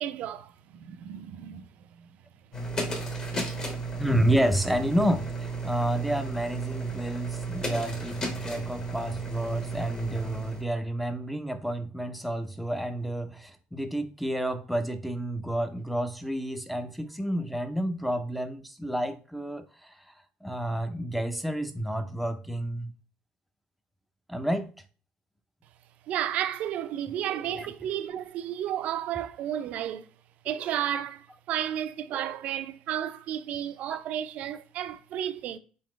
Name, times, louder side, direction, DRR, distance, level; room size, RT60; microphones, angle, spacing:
voice 1, 0.0-1.9 26.1-30.1 30.4-35.6, right 11 dB, 60° right, 0.5 m, -32 dB
sound 1, 2.5-10.6, right 3 dB, 30° left, 1.2 m, -33 dB
voice 2, 4.0-19.9 20.4-22.9 24.3-24.7 27.5-27.7, equal, ahead, 0.5 m, -30 dB
4.1 x 4.0 x 3.1 m
cardioid pair, 130°, 3 cm